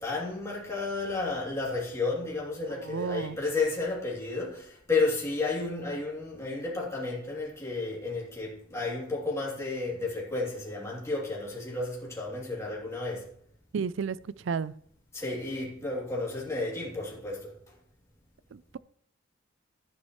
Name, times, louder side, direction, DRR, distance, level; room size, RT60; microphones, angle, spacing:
voice 1, 0.0-13.3 15.1-17.5, left 3 dB, 15° left, 3.0 m, -32 dB
voice 2, 2.7-3.4 13.7-14.2 14.4-14.7 18.5-18.8, right 6 dB, 65° right, 0.4 m, -32 dB
12.5 x 9.7 x 3.2 m
head